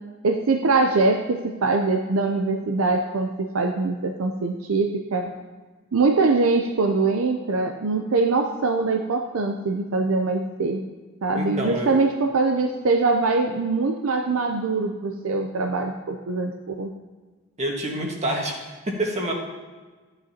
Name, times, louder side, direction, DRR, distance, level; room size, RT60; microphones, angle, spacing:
voice 1, 0.2-5.3 5.9-10.8 11.2-16.9, right 3 dB, 70° right, 4 dB, 0.6 m, -23 dB
voice 2, 11.3-12.0 17.6-19.3, right 1 dB, 35° right, 0 dB, 1.6 m, -27 dB
13.0 x 8.8 x 2.8 m, 1.3 s
head